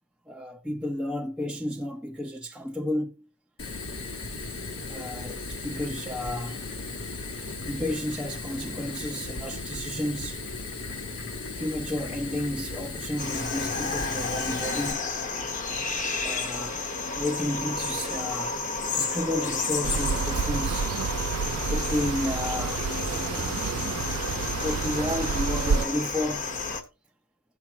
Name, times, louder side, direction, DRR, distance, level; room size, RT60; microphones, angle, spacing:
voice 1, 0.3-3.3 4.9-6.7 7.7-10.4 11.6-15.0 16.2-18.6 18.9-20.9 21.7-24.1 24.6-26.5, left 1 dB, 5° right, 0.7 m, -32 dB
Fire, 3.6-14.9, left 3 dB, 60° left, 1.5 m, -36 dB
sound 1, 13.2-26.8, left 3 dB, 35° left, 1.2 m, -31 dB
sound 2, 19.8-25.8, right 6 dB, 75° right, 0.4 m, -29 dB
17.0 x 6.0 x 3.0 m
head